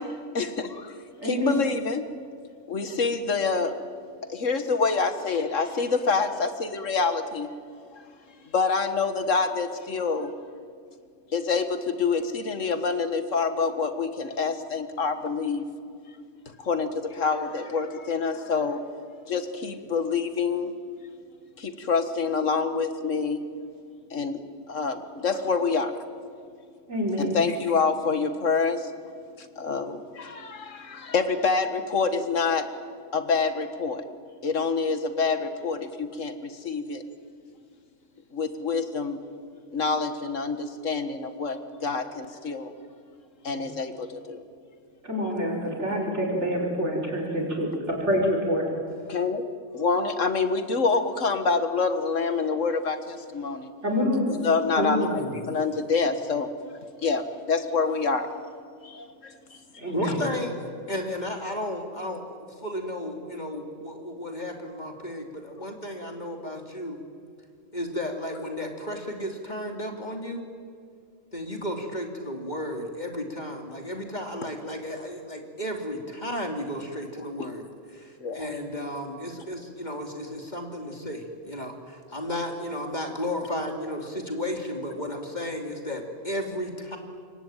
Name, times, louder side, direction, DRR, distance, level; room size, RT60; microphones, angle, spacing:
voice 1, 0.0-2.0 2.7-3.8 4.3-7.5 8.5-10.3 11.3-15.6 16.6-18.9 19.3-20.7 21.6-23.4 24.1-25.9 27.2-28.9 29.4-32.7 33.1-34.1 34.4-37.0 38.3-39.2 39.7-42.7 43.4-44.4 49.1-49.4 49.7-53.7 54.3-55.2 55.5-56.5 57.0-58.3 58.8-59.6 60.1-60.2 77.4-77.5 78.2-78.5, left 4 dB, 80° left, 9 dB, 1.9 m, -27 dB
voice 2, 1.2-1.5 26.9-27.3 43.5-43.6 45.0-48.7 53.8-54.2 59.8-60.2, equal, 65° right, -1 dB, 6.1 m, -26 dB
voice 3, 54.8-55.4 59.9-67.0 67.7-70.4 71.3-87.0, left 1 dB, 35° left, 3 dB, 3.0 m, -33 dB
27.0 x 23.0 x 9.0 m, 2.2 s
omnidirectional pair, 1.3 m